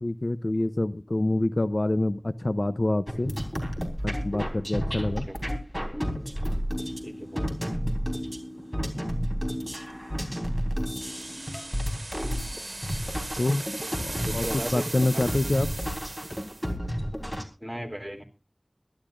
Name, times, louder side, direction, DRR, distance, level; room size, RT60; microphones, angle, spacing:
voice 1, 0.0-3.3 4.0-5.3 13.4-13.6 14.0-15.7, left 2 dB, 60° left, 13 dB, 0.6 m, -26 dB
sound 1, 3.1-17.4, equal, 15° left, 3.6 m, -31 dB
voice 2, 7.0-7.5 14.3-14.8 15.1-15.2 17.6-18.2, equal, 10° right, 4 dB, 2.9 m, -35 dB
sound 2, 11.0-16.7, right 2 dB, 75° right, 1.4 m, -38 dB
22.0 x 12.5 x 2.5 m, 0.32 s
wide cardioid pair, 40°, 0 cm